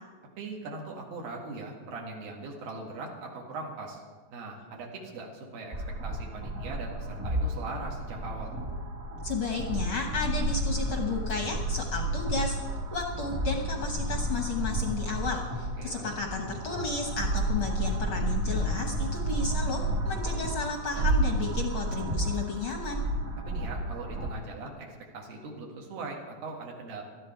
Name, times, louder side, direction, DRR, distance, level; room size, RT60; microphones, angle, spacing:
voice 1, 0.4-4.0 4.3-5.7 6.0-8.6 15.8-16.2 23.5-24.9 25.1-27.0, right 3 dB, 80° right, -1 dB, 3.7 m, -40 dB
sound 1, 5.7-24.3, right 1 dB, 35° right, 1.5 m, -31 dB
voice 2, 9.2-23.0, left 4 dB, 70° left, 2 dB, 1.2 m, -33 dB
18.5 x 13.0 x 4.5 m, 1.4 s
omnidirectional pair, 4.1 m